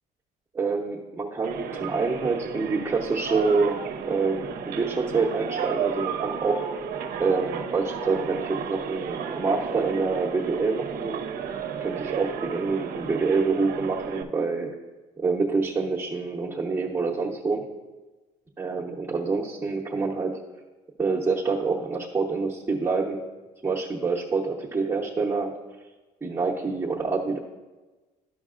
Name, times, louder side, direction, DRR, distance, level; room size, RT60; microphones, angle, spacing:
voice 1, 0.5-6.6 7.2-11.2 11.8-14.7 15.2-17.7 18.6-20.4 21.0-23.2 23.6-25.5 26.2-27.4, right 4 dB, 15° right, -5 dB, 0.8 m, -26 dB
sound 1, 1.4-14.2, right 7 dB, 60° right, 0.6 m, -33 dB
12.0 x 5.3 x 2.4 m, 1.2 s
cardioid pair, 110°, 17 cm